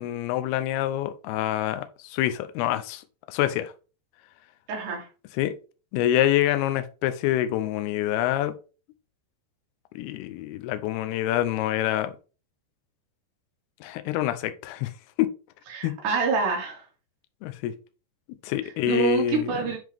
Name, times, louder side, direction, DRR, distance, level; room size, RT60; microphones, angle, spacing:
voice 1, 0.0-3.7 5.4-5.6 5.9-8.5 10.0-12.1 13.8-14.9 15.2-15.3 15.8-15.9 17.4-17.7 18.4-19.6, left 12 dB, 85° left, 11 dB, 2.3 m, -26 dB
voice 2, 4.7-5.1 15.7-16.8 18.9-19.8, right 5 dB, 70° right, -1 dB, 4.3 m, -26 dB
10.5 x 3.7 x 3.5 m, 0.34 s
omnidirectional pair, 5.2 m